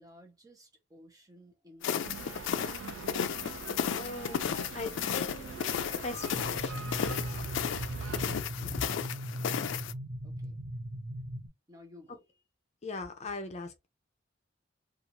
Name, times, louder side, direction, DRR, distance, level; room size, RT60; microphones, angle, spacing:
voice 1, 0.0-2.7 8.6-9.0 10.2-10.6 11.7-12.4, left 1 dB, 20° right, 0.8 m, -56 dB
sound 1, 1.8-9.9, left 8 dB, 85° left, 0.3 m, -34 dB
sound 2, 2.0-8.4, right 6 dB, 85° right, 0.3 m, -43 dB
voice 2, 3.7-5.7 6.0-6.8 8.3-8.8 12.8-13.9, left 3 dB, 35° left, 0.5 m, -40 dB
sound 3, 6.3-11.5, equal, 55° right, 0.8 m, -39 dB
2.6 x 2.4 x 2.9 m
head